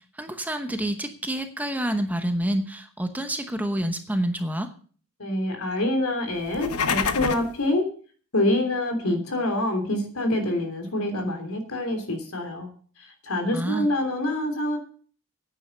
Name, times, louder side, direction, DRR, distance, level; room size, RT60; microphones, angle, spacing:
voice 1, 0.2-4.7 13.5-13.9, right 1 dB, 5° right, 7 dB, 0.9 m, -28 dB
voice 2, 5.2-7.9 8.3-12.7 13.2-14.8, left 1 dB, 70° left, 5 dB, 3.2 m, -26 dB
sound 1, 6.4-7.6, left 5 dB, 90° left, 1.1 m, -26 dB
10.0 x 9.1 x 6.5 m, 0.43 s
head